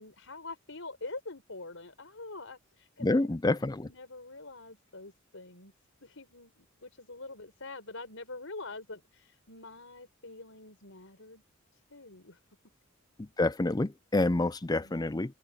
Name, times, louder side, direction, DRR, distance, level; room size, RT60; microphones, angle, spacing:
voice 1, 0.0-5.7 6.0-11.4 11.7-12.4 14.7-15.0, left 3 dB, 70° left, 4.9 m, -45 dB
voice 2, 3.0-3.9 13.2-15.3, left 2 dB, 20° left, 0.5 m, -28 dB
open air
head